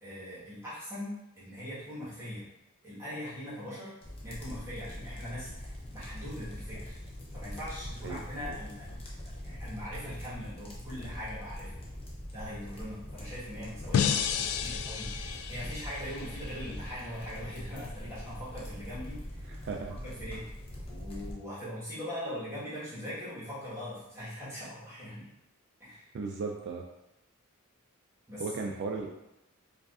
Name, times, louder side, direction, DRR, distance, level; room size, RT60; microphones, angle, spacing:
voice 1, 0.0-2.5 2.8-4.0 4.2-7.0 7.3-9.0 9.4-11.7 12.3-19.5 20.0-20.5 20.9-25.3 25.8-26.1 28.3-28.5, equal, 15° right, -11 dB, 1.3 m, -41 dB
sound 1, 4.0-21.3, equal, 25° left, 0.7 m, -42 dB
voice 2, 8.0-8.6 19.5-20.0 26.1-26.8 28.4-29.1, right 4 dB, 50° right, 1 dB, 0.3 m, -36 dB
sound 2, 13.9-17.1, left 7 dB, 80° left, 0.3 m, -32 dB
4.7 x 2.5 x 2.4 m, 0.91 s
head